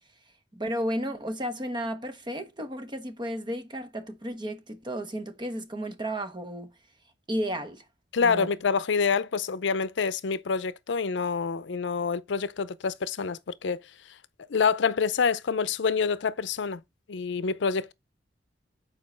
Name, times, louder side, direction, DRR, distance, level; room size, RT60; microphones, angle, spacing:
voice 1, 0.5-6.7 7.3-7.8 8.2-8.5, equal, 25° right, 1.1 m, -33 dB
voice 2, 8.1-13.8 14.5-16.8 17.1-17.9, left 5 dB, 75° left, 0.5 m, -27 dB
7.5 x 4.6 x 4.4 m
head